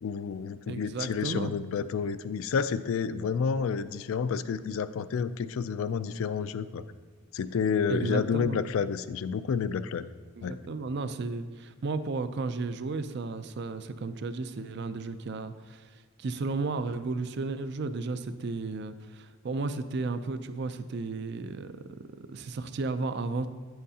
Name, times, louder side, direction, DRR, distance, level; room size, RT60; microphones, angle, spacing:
voice 1, 0.0-6.8 7.3-10.1 10.4-10.6, left 6 dB, 70° left, 14 dB, 0.3 m, -30 dB
voice 2, 0.7-1.6 7.9-8.6 10.4-21.8 22.3-23.5, right 3 dB, 50° right, 11 dB, 0.4 m, -33 dB
9.0 x 7.8 x 2.8 m, 1.5 s
head